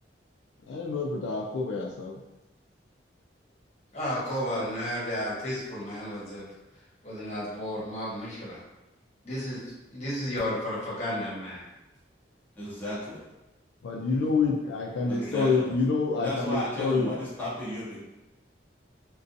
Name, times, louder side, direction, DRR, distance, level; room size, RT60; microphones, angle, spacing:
voice 1, 0.7-2.2 13.8-17.1, left 4 dB, 70° left, -1 dB, 0.3 m, -27 dB
voice 2, 3.9-6.4 7.0-8.6 9.2-9.6 9.9-11.6 14.1-14.2 15.2-15.3, equal, 35° left, -7 dB, 0.9 m, -33 dB
voice 3, 12.6-13.2 15.1-15.7 16.2-18.0, left 1 dB, 10° left, -9 dB, 0.5 m, -34 dB
2.5 x 2.2 x 2.5 m, 1.0 s
head